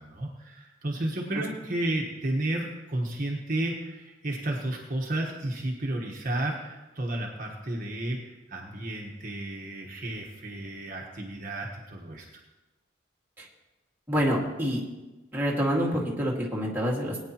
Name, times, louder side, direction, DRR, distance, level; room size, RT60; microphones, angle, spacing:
voice 1, 0.0-12.2, right 1 dB, 40° right, -1 dB, 1.3 m, -32 dB
voice 2, 14.1-14.8 15.3-17.2, equal, 10° right, -4 dB, 1.9 m, -27 dB
20.0 x 9.1 x 3.0 m, 1.1 s
head